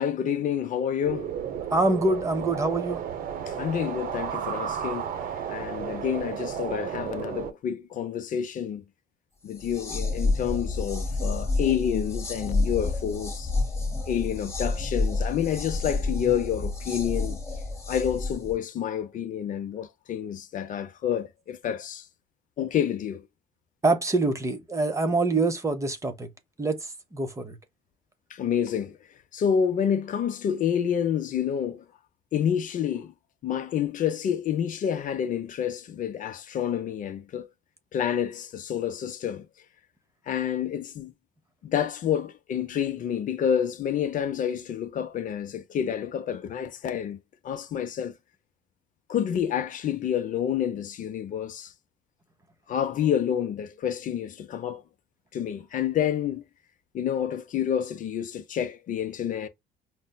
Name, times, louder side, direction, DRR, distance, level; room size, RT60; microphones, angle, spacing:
voice 1, 0.0-1.3 3.5-5.0 5.5-8.8 9.4-13.5 14.1-17.4 17.9-22.0 22.6-23.2 28.3-29.0 29.3-31.8 32.3-33.1 33.4-37.5 37.9-39.5 40.3-41.1 41.6-47.2 47.4-48.1 49.1-51.7 52.7-54.8 55.3-56.4 56.9-59.5, left 9 dB, 50° left, 0.6 m, -28 dB
sound 1, 1.0-7.5, right 8 dB, 60° right, 0.8 m, -33 dB
voice 2, 1.7-3.0 23.8-26.3 26.6-27.6, right 2 dB, 20° right, 0.7 m, -25 dB
sound 2, 9.5-18.6, left 3 dB, 15° left, 0.9 m, -29 dB
5.3 x 2.0 x 2.2 m
cardioid pair, 110°, 17 cm